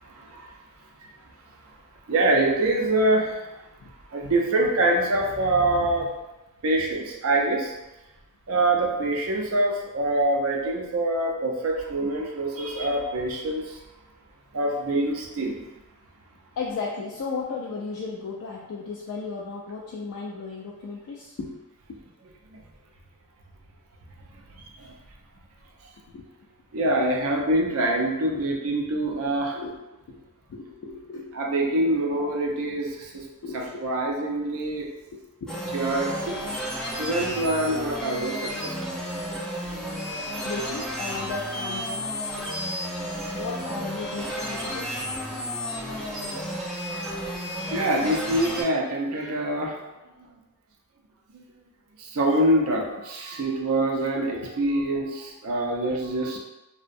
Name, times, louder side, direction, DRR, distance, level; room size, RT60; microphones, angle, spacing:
voice 1, 0.0-0.5 2.1-3.5 4.1-6.1 6.6-7.7 8.5-13.8 14.5-15.7 24.5-24.9 26.7-29.6 31.3-33.2 33.5-34.9 35.7-38.8 43.0-43.3 46.9-47.3 47.6-49.9 51.3-51.4 52.0-56.4, right 1 dB, 70° right, 0 dB, 0.5 m, -25 dB
voice 2, 16.6-21.5 21.9-22.0 26.1-26.5 28.3-28.4 29.5-30.2 30.5-31.3 33.4-33.9 35.4-35.8 40.4-42.1 43.3-44.9 54.4-54.5, left 4 dB, 75° left, -3 dB, 0.3 m, -35 dB
sound 1, 35.5-48.6, equal, 5° left, 0.5 m, -32 dB
2.6 x 2.1 x 2.5 m, 1.0 s
head